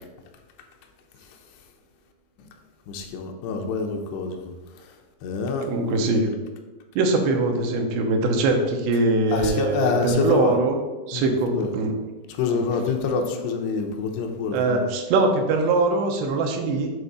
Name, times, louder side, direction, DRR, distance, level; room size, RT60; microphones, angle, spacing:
voice 1, 2.9-4.4 5.2-5.7 9.3-10.5 11.1-11.3 11.6-11.7 12.3-14.9, left 4 dB, 80° left, 3 dB, 2.9 m, -26 dB
voice 2, 5.7-6.4 7.0-10.8 11.1-11.9 12.5-12.6 14.5-16.9, right 2 dB, 90° right, 3 dB, 3.0 m, -22 dB
8.2 x 3.5 x 5.4 m, 1.2 s
omnidirectional pair, 4.8 m